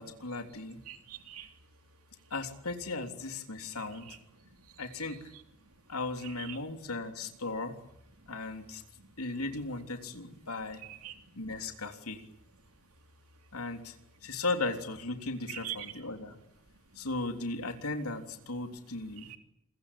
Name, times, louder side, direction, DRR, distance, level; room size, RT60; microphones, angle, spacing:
voice 1, 0.0-0.8 2.3-4.0 4.8-5.2 5.9-7.7 8.3-8.8 9.2-10.8 11.3-12.2 13.5-13.9 14.2-16.3 16.9-19.3, left 3 dB, 80° left, 6 dB, 3.4 m, -36 dB
voice 2, 0.9-1.5 3.8-4.2 6.2-6.6 10.8-11.1 15.5-15.8 19.3-19.4, right 12 dB, 80° right, 6 dB, 3.1 m, -43 dB
27.5 x 22.5 x 8.5 m, 0.80 s
head